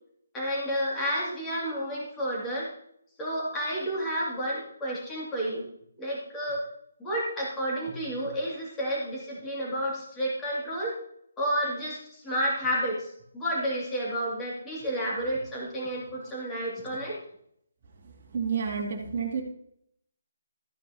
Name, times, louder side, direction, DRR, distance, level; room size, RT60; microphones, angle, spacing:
voice 1, 0.3-2.7 3.2-5.6 6.0-6.6 7.0-10.9 11.4-13.1 13.3-17.2, equal, 10° left, -6 dB, 2.3 m, -30 dB
voice 2, 18.3-19.4, right 6 dB, 35° right, -4 dB, 2.3 m, -29 dB
14.0 x 9.6 x 2.8 m, 0.71 s
hypercardioid pair, 175°, 0 cm